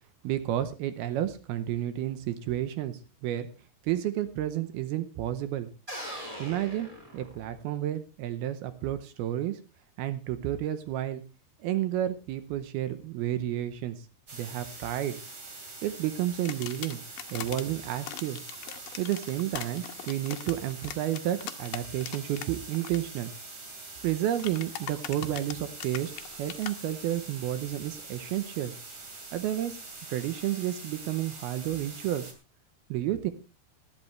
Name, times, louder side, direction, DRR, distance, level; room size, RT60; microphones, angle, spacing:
voice 1, 0.2-3.5 3.8-5.7 6.4-9.6 10.0-11.2 11.6-14.0 14.3-15.2 15.8-17.0 17.3-18.4 19.0-23.3 24.0-26.1 26.4-28.7 29.3-29.8 30.1-32.3 32.9-33.3, right 12 dB, 80° right, 11 dB, 2.6 m, -31 dB
sound 1, 5.9-7.8, equal, 10° right, 3.2 m, -41 dB
sound 2, 14.3-32.3, right 3 dB, 35° right, 2.9 m, -44 dB
sound 3, 16.5-17.6 18.1-22.5 22.7-23.0 24.4-26.7, left 12 dB, 70° left, 2.2 m, -40 dB
19.5 x 11.0 x 3.2 m, 0.30 s
omnidirectional pair, 4.7 m